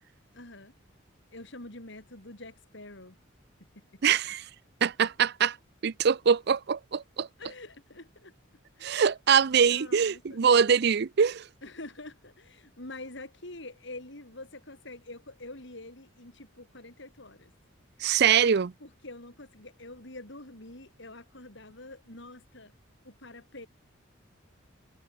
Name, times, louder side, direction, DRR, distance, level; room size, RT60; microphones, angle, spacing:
voice 1, 0.3-0.7 1.3-3.2 3.7-4.0 7.4-8.3 8.8-8.9 9.7-10.4 11.6-17.5 18.8-22.7 23.0-23.7, left 2 dB, 60° left, 5.0 m, -46 dB
voice 2, 4.0-4.4 4.8-5.6 5.8-7.3 8.8-11.5 18.0-18.7, right 7 dB, 55° right, 0.5 m, -23 dB
head